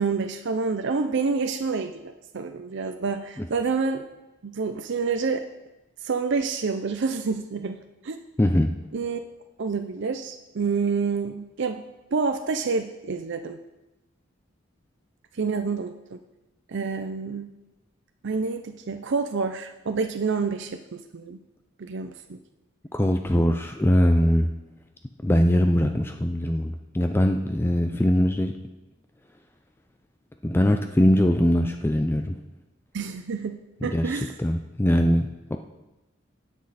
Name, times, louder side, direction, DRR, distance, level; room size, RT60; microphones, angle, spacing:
voice 1, 0.0-4.1 4.4-5.5 6.0-7.8 8.0-8.2 8.9-9.2 9.6-11.8 12.1-13.6 15.3-16.2 16.7-17.5 18.2-21.4 21.8-22.4 32.9-34.4, right 4 dB, 60° right, 7 dB, 0.5 m, -28 dB
voice 2, 8.4-8.7 22.9-24.5 25.2-28.5 30.4-32.4 33.8-35.6, equal, 10° left, 6 dB, 0.4 m, -22 dB
17.0 x 6.3 x 4.1 m, 1.0 s
head